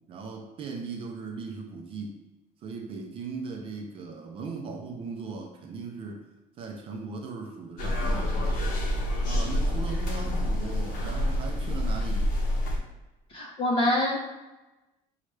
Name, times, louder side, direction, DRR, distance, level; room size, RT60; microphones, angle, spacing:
voice 1, 0.1-2.2 2.6-6.2 6.6-8.6 9.2-12.3, right 4 dB, 35° right, 2 dB, 0.5 m, -38 dB
sound 1, 7.8-12.8, left 1 dB, 65° left, 0.9 m, -27 dB
voice 2, 13.3-14.2, left 1 dB, 35° left, -2 dB, 0.9 m, -25 dB
6.3 x 2.4 x 3.2 m, 1.0 s
cardioid pair, 170°, 15 cm